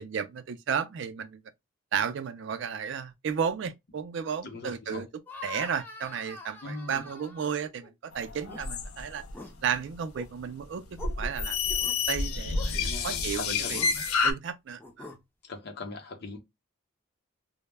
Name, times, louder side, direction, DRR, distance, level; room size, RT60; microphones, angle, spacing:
voice 1, 0.0-1.4 1.9-5.1 5.4-9.2 9.6-11.8 12.1-15.1, right 7 dB, 60° right, 0.3 m, -33 dB
voice 2, 4.4-5.1 6.6-7.1 12.7-14.0 15.4-16.4, left 3 dB, 50° left, 0.6 m, -40 dB
sound 1, 5.3-7.9 8.3-8.6 9.2-9.5 10.0-10.3 11.0-11.1 11.8-11.9 12.5-12.7 13.7-13.9 14.8-15.2, left 3 dB, 10° left, 0.4 m, -44 dB
sound 2, 8.1-9.3 11.0-14.3, left 5 dB, 90° left, 0.4 m, -29 dB
2.1 x 2.0 x 3.2 m
head